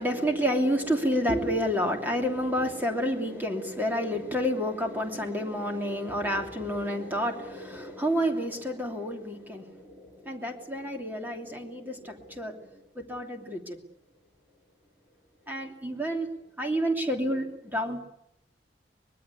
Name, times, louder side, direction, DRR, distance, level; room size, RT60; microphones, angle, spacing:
voice 1, 0.0-13.8 15.5-16.3 16.6-18.0, equal, 10° right, 3 dB, 2.9 m, -29 dB
24.5 x 20.5 x 8.4 m, 0.80 s
head